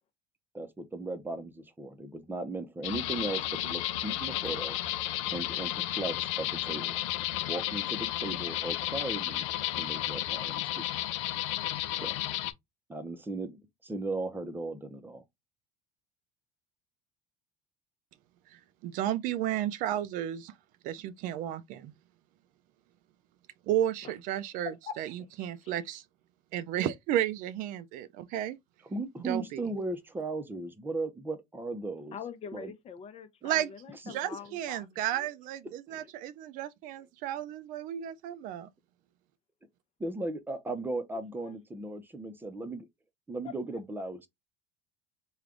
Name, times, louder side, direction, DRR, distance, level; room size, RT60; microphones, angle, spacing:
voice 1, 0.5-4.8 5.3-7.0 7.4-9.5 9.8-10.9 12.0-12.1 12.9-15.2 28.9-32.2 32.5-32.7 34.1-34.2 35.9-36.1 40.0-42.8 43.3-44.3, right 2 dB, 15° right, 0.7 m, -37 dB
sound 1, 2.8-12.5, left 14 dB, 85° left, 0.5 m, -33 dB
voice 2, 18.8-20.5 20.8-21.9 23.7-26.0 26.5-28.6 29.2-29.6 33.4-33.7 34.1-38.7, right 12 dB, 60° right, 0.4 m, -33 dB
voice 3, 24.6-25.0 25.6-25.8 32.1-35.3 41.3-41.6 43.4-43.5, left 7 dB, 40° left, 0.7 m, -44 dB
3.3 x 2.3 x 3.7 m
supercardioid pair, 105°, 16 cm